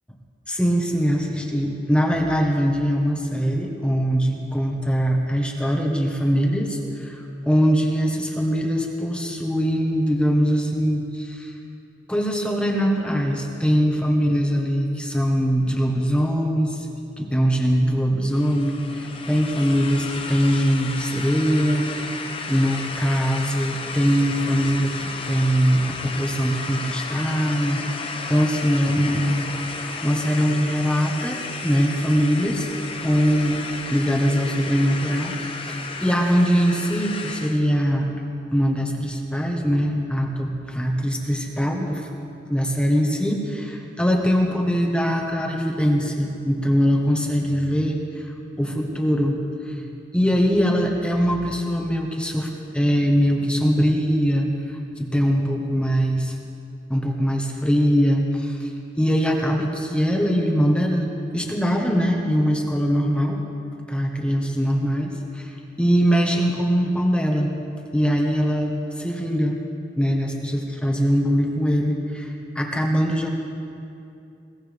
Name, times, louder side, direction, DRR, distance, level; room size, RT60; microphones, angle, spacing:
voice 1, 0.5-11.5 12.1-16.9 17.2-21.9 22.5-27.8 28.3-32.7 33.0-33.6 33.9-38.1 38.5-42.1 42.5-56.3 56.9-58.7 59.0-63.4 63.9-67.6 67.9-69.6 70.0-73.3, equal, 5° left, 0 dB, 1.4 m, -22 dB
sound 1, 18.3-37.6, left 4 dB, 30° left, 0.9 m, -33 dB
21.5 x 18.5 x 3.5 m, 2.6 s
head